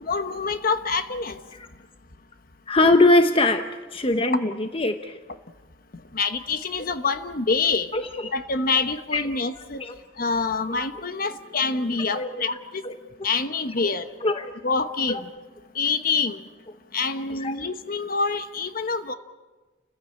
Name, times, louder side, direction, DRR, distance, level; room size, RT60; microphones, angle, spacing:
voice 1, 0.0-1.4 6.1-7.9 8.3-9.8 10.2-12.8 13.2-14.0 14.6-15.3 15.7-16.4 16.9-19.1, left 4 dB, 50° left, 9 dB, 1.1 m, -26 dB
voice 2, 2.7-3.7 3.9-5.1 7.9-8.3 9.1-9.2 9.7-10.0 10.7-10.8 12.1-12.3 12.8-12.9 14.2-14.5 15.1-15.2 17.4-17.5, left 2 dB, 30° left, 7 dB, 0.9 m, -21 dB
29.5 x 15.5 x 8.7 m, 1.3 s
head